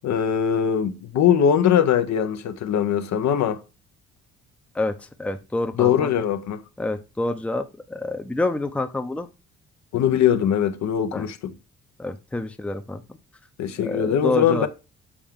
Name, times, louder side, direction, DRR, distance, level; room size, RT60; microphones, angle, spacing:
voice 1, 0.0-3.6 5.8-6.6 9.9-11.5 13.6-14.7, left 9 dB, 65° left, 0.7 m, -21 dB
voice 2, 5.2-6.1 6.8-9.3 11.1-11.3 12.0-13.2 13.8-14.7, left 2 dB, 5° left, 0.5 m, -27 dB
7.1 x 4.6 x 3.6 m
cardioid pair, 90°, 30 cm